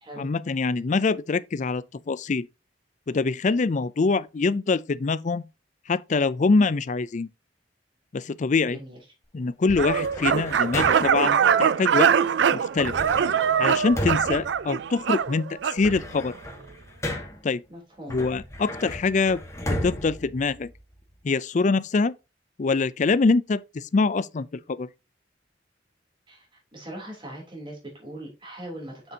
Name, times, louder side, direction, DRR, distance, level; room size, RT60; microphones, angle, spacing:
voice 1, 0.2-2.5 3.1-5.4 5.9-7.3 8.1-8.8 9.3-12.1 12.5-13.0 13.6-16.3 17.4-17.6 18.1-19.4 19.8-20.7 21.2-22.1 22.6-24.9, left 4 dB, 40° left, 0.4 m, -24 dB
voice 2, 8.6-9.0 17.7-18.2 26.3-26.5 26.7-29.1, right 1 dB, 25° right, 3.2 m, -40 dB
sound 1, 9.7-11.3 12.8-15.2 15.6-17.5 18.1-21.1, left 1 dB, 15° left, 1.5 m, -34 dB
sound 2, 9.8-15.8, right 7 dB, 70° right, 0.4 m, -22 dB
7.7 x 6.7 x 2.8 m
head